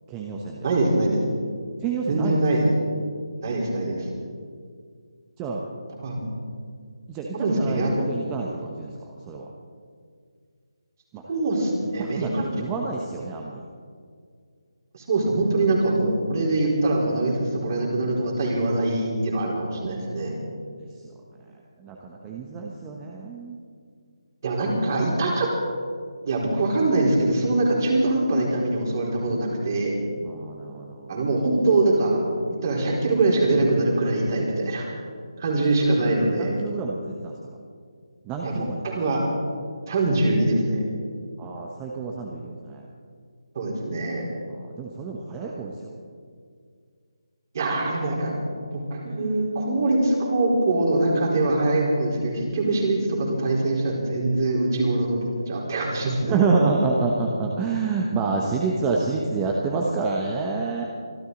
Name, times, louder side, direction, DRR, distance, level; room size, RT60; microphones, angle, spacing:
voice 1, 0.1-0.7 1.8-2.4 5.4-5.6 7.1-8.9 9.3-9.5 11.1-11.2 12.0-13.6 21.8-23.6 30.3-31.1 36.2-37.3 38.2-38.8 41.4-42.8 44.5-45.7 56.2-60.8, right 4 dB, 15° right, -1 dB, 1.1 m, -28 dB
voice 2, 0.6-1.2 2.1-2.7 3.4-4.1 6.0-6.4 7.3-7.9 11.3-12.5 14.9-20.4 24.4-25.5 26.2-30.0 31.1-32.2 32.6-34.9 35.4-36.5 38.4-39.2 39.9-40.8 43.5-44.3 47.5-48.3 48.7-55.2 55.5-56.4, right 2 dB, 40° right, -2 dB, 4.1 m, -23 dB
25.0 x 12.5 x 4.0 m, 2.1 s
figure-of-eight pair, 150°, 3 cm